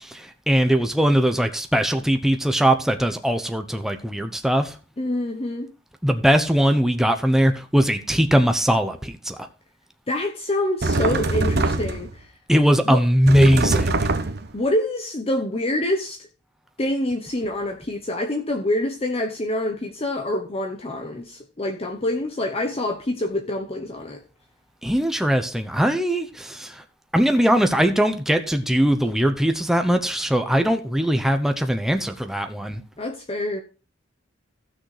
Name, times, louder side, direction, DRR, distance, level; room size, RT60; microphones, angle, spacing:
voice 1, 0.0-4.7 6.0-9.4 12.5-14.1 24.8-26.8 27.1-32.8, equal, ahead, 0.7 m, -20 dB
voice 2, 5.0-5.7 10.1-12.3 12.8-13.0 14.5-16.3 16.8-24.2 33.0-33.6, left 1 dB, 30° left, 0.9 m, -26 dB
sound 1, 10.8-12.1 13.3-14.5, right 2 dB, 60° right, 1.0 m, -23 dB
15.5 x 6.3 x 3.3 m
head